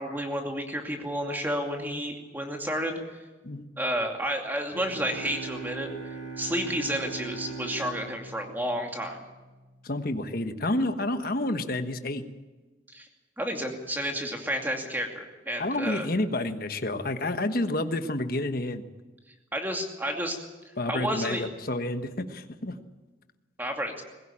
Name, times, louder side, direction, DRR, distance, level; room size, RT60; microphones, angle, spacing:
voice 1, 0.0-3.0 3.8-5.9 6.4-9.2 12.9-13.1 13.4-16.1 19.5-20.4 20.9-21.4 23.6-24.0, equal, 10° right, 2 dB, 2.5 m, -31 dB
sound 1, 4.7-9.4, right 4 dB, 80° right, 5.0 m, -40 dB
voice 2, 9.8-12.2 15.6-18.8 20.8-22.8, left 1 dB, 50° left, 8 dB, 1.3 m, -29 dB
21.0 x 16.5 x 8.8 m, 1.2 s
head